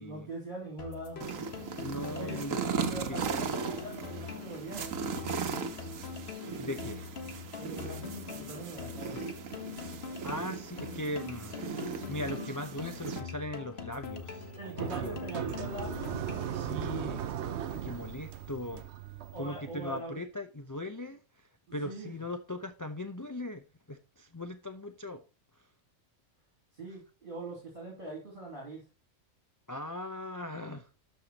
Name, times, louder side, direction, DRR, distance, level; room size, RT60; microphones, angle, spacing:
voice 1, 0.0-1.6 2.1-2.4 2.9-5.3 7.6-9.2 14.6-16.1 16.8-17.2 19.3-20.2 21.8-22.2 26.7-28.8, right 2 dB, 40° right, 3.0 m, -42 dB
sound 1, 0.8-16.8, left 6 dB, 50° left, 1.5 m, -43 dB
sound 2, 1.2-13.2, right 6 dB, 75° right, 1.4 m, -38 dB
voice 2, 1.8-2.6 3.1-3.3 6.6-7.1 10.2-15.2 16.5-18.8 19.4-25.2 29.7-30.9, left 1 dB, 20° left, 0.6 m, -39 dB
sound 3, 14.1-20.0, right 10 dB, 60° right, 0.9 m, -38 dB
12.5 x 5.7 x 2.9 m
omnidirectional pair, 1.4 m